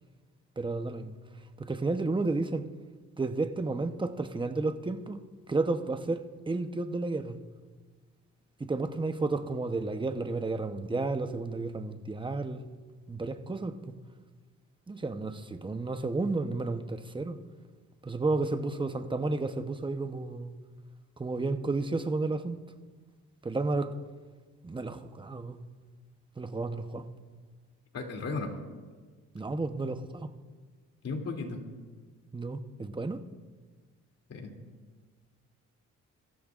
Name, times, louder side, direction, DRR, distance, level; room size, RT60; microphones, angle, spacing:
voice 1, 0.6-1.1 1.6-2.6 3.2-5.2 5.5-7.4 8.6-12.6 13.1-13.9 14.9-17.4 18.0-20.5 21.2-22.6 23.4-23.9 24.6-25.6 26.4-27.1 29.3-30.3 32.3-33.2, right 3 dB, 15° right, 0.9 m, -32 dB
voice 2, 27.9-28.6 31.0-31.6 34.3-34.6, left 3 dB, 55° left, 2.8 m, -35 dB
24.0 x 14.5 x 2.5 m
cardioid pair, 90°, 30 cm